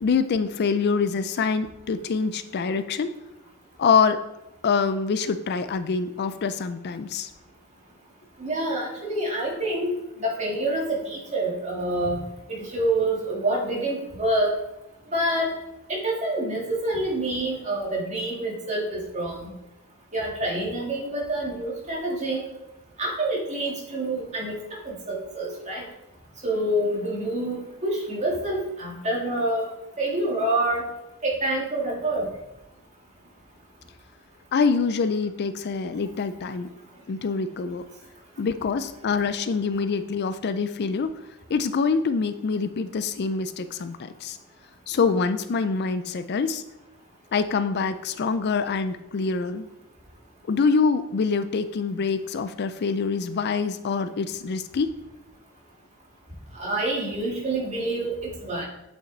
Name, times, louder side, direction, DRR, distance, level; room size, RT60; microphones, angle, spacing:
voice 1, 0.0-3.1 3.8-4.2 4.6-7.3 34.5-36.7 37.1-37.8 38.4-41.1 41.5-44.4 44.9-46.6 47.3-49.7 50.5-54.9, left 5 dB, 50° left, 11 dB, 0.4 m, -25 dB
voice 2, 8.4-12.2 12.6-14.5 15.1-15.5 15.9-19.5 20.1-22.4 23.0-24.6 24.9-25.9 26.4-29.7 30.0-30.8 31.2-32.3 56.5-58.7, right 1 dB, 35° right, -2 dB, 2.1 m, -27 dB
8.4 x 6.1 x 3.9 m, 0.92 s
head